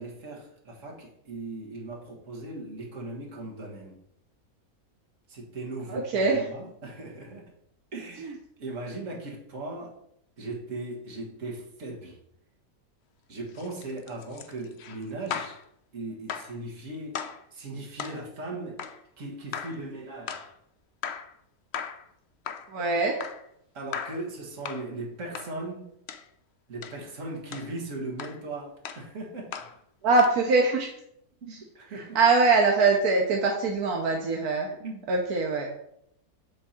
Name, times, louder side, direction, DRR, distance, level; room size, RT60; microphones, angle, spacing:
voice 1, 0.0-4.0 5.3-7.5 7.9-10.0 10.4-12.2 13.3-15.6 15.9-18.8 19.2-20.5 23.7-25.9 26.7-29.5 31.4-32.2 34.8-35.0, right 2 dB, 55° right, -2 dB, 2.0 m, -38 dB
voice 2, 5.9-6.5 8.2-8.3 22.7-23.2 30.0-30.9 31.5-31.6 32.1-34.7 35.1-35.8, right 3 dB, 80° right, 1 dB, 1.4 m, -23 dB
sound 1, 13.5-15.6 16.3-16.6 17.1-17.4 18.0-18.2 18.8-19.0 19.5-19.8 20.3-20.5 21.0-21.3 21.7-22.1 22.4-22.7 23.2-23.5 23.9-24.2 24.6-24.9 25.3-25.5 26.1-26.3 26.8-27.0 27.5-27.7 28.2-28.4 28.8-29.1 29.5-29.8 30.2-30.4, left 7 dB, 60° left, 0.7 m, -37 dB
8.5 x 3.6 x 4.3 m, 0.73 s
omnidirectional pair, 1.6 m